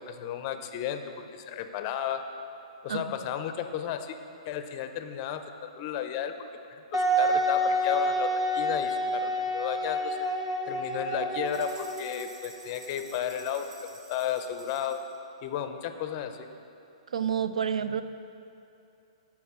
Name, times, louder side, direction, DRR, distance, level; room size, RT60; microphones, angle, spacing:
voice 1, 0.0-2.3 2.8-4.2 4.5-10.2 10.7-15.0 15.4-16.5, left 9 dB, 35° left, 8 dB, 0.5 m, -34 dB
Wind instrument woodwind instrument, 6.9-12.5, equal, 15° right, 0.7 m, -28 dB
sound 1, 11.5-15.1, right 2 dB, 55° right, 1.7 m, -50 dB
voice 2, 17.1-18.0, right 8 dB, 80° right, 11 dB, 0.4 m, -29 dB
12.5 x 4.7 x 3.6 m, 2.7 s
hypercardioid pair, 140°, 3 cm